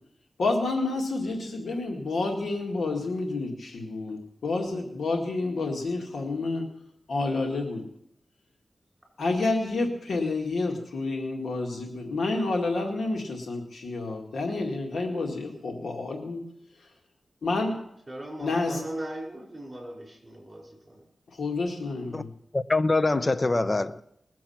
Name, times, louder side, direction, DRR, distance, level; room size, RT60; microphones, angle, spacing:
voice 1, 0.4-6.7 7.1-7.8 9.2-16.4 17.4-17.8 18.4-18.8 21.4-22.3, left 3 dB, 90° left, 2.1 m, -29 dB
voice 2, 18.1-21.0, right 1 dB, 25° right, 4.6 m, -39 dB
voice 3, 22.5-24.0, left 2 dB, 30° left, 0.6 m, -24 dB
20.5 x 7.6 x 5.8 m
wide cardioid pair, 100°, 0 cm